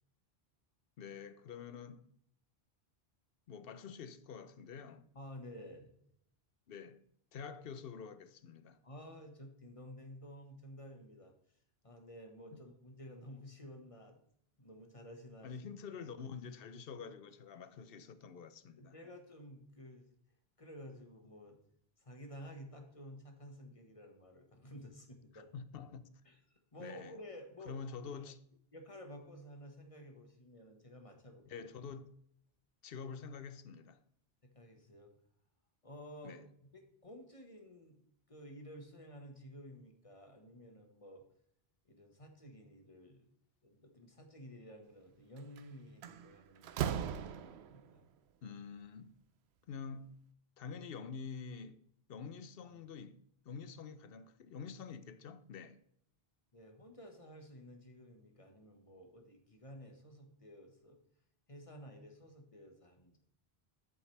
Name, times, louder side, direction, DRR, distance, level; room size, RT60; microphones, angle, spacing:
voice 1, 1.0-2.1 3.5-5.0 6.7-7.0 7.3-8.8 12.5-12.6 15.4-18.9 25.3-26.1 26.8-27.1 27.7-28.4 31.5-32.1 32.8-34.0 36.2-36.4 48.4-49.1 49.7-50.1 50.6-51.8 52.1-53.2 53.4-55.8, left 6 dB, 65° left, 0.8 m, -47 dB
voice 2, 5.1-5.9 8.8-11.3 11.8-14.2 14.6-15.6 18.8-20.1 20.6-21.6 22.0-25.5 26.2-28.1 28.7-31.7 34.4-35.1 35.8-41.2 41.8-43.3 43.6-48.0 52.6-52.8 56.5-61.0 61.5-63.2, equal, 35° left, 1.5 m, -53 dB
Slam, 45.4-45.6 46.0-47.9, right 9 dB, 90° right, 0.8 m, -38 dB
8.2 x 7.8 x 3.3 m
omnidirectional pair, 1.1 m